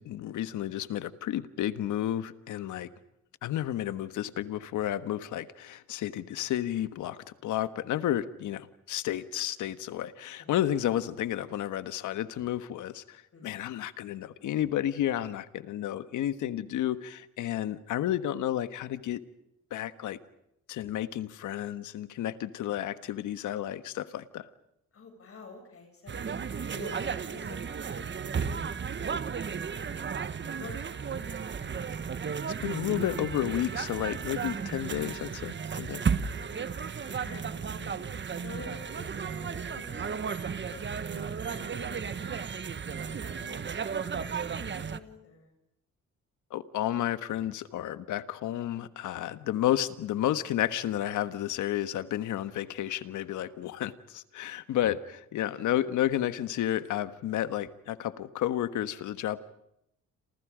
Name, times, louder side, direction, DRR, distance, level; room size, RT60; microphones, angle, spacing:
voice 1, 0.0-2.9 3.4-19.2 19.7-20.2 20.7-24.5 32.6-36.1 46.5-59.4, left 12 dB, 80° left, 12 dB, 1.5 m, -31 dB
voice 2, 24.9-26.5 26.7-31.8 35.9-40.2 40.7-42.4 43.1-45.5 54.4-54.6, left 3 dB, 50° left, 4 dB, 7.6 m, -50 dB
sound 1, 26.1-45.0, right 6 dB, 40° right, 1.4 m, -34 dB
29.0 x 28.0 x 5.1 m, 0.80 s
cardioid pair, 90°, 30 cm